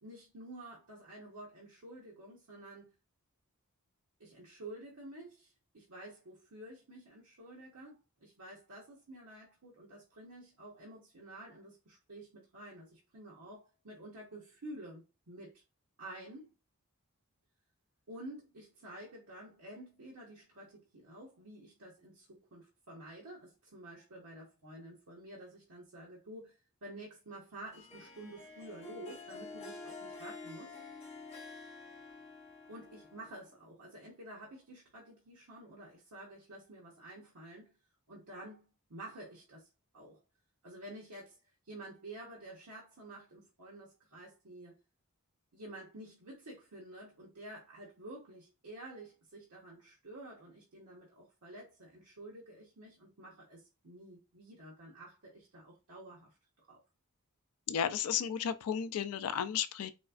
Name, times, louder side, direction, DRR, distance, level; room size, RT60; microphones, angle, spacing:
voice 1, 0.0-2.9 4.2-15.6 16.0-16.5 18.1-30.8 32.7-37.7 38.1-40.2 40.6-41.4 41.6-44.8 45.5-56.4 56.7-56.8, right 1 dB, 85° right, 0.9 m, -50 dB
Harp, 27.7-33.5, left 3 dB, 30° left, 0.8 m, -49 dB
voice 2, 57.7-59.9, left 8 dB, 75° left, 0.3 m, -33 dB
4.1 x 2.4 x 2.3 m
head